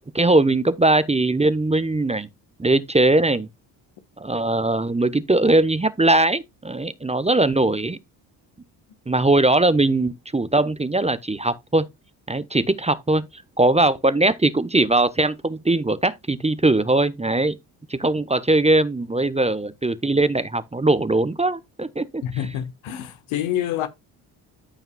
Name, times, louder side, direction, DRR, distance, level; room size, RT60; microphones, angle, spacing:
voice 1, 0.1-2.3 2.6-3.5 4.2-8.0 9.1-11.9 12.3-17.6 17.9-22.2, right 2 dB, 15° right, 0.9 m, -20 dB
voice 2, 22.2-23.9, left 11 dB, 75° left, 1.5 m, -27 dB
14.0 x 5.6 x 2.3 m
supercardioid pair, 60°, 48 cm